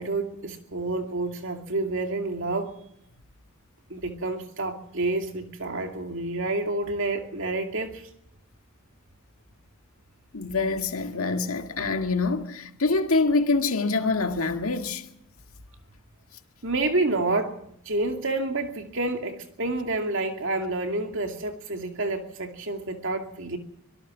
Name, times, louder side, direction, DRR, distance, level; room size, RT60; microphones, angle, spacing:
voice 1, 0.0-2.7 3.9-8.1 16.6-17.6 17.8-23.6, right 2 dB, 65° right, 2.6 m, -29 dB
voice 2, 10.3-15.0, left 3 dB, 80° left, 1.9 m, -25 dB
24.5 x 18.0 x 6.2 m
head